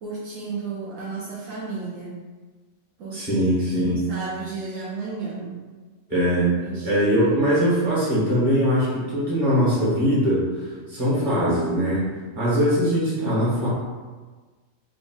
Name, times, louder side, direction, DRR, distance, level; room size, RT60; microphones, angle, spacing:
voice 1, 0.0-2.1 3.0-5.6 6.6-7.2, right 4 dB, 80° right, -7 dB, 1.1 m, -33 dB
voice 2, 3.1-4.1 6.1-6.5 6.8-10.5 10.9-12.0 12.4-13.7, equal, 35° right, -10 dB, 1.7 m, -21 dB
3.5 x 2.5 x 3.8 m, 1.4 s
omnidirectional pair, 1.4 m